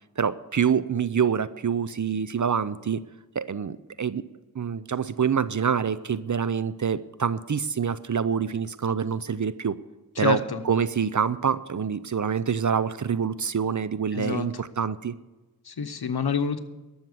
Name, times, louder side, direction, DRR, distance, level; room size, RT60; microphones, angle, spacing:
voice 1, 0.2-3.0 3.4-4.2 4.5-9.8 10.2-10.4 10.7-15.2, right 7 dB, 50° right, 16 dB, 0.6 m, -26 dB
voice 2, 10.2-10.6 14.1-14.5 15.6-16.6, left 6 dB, 80° left, 9 dB, 1.0 m, -27 dB
12.5 x 7.2 x 7.9 m, 1.1 s
wide cardioid pair, 45°, 38 cm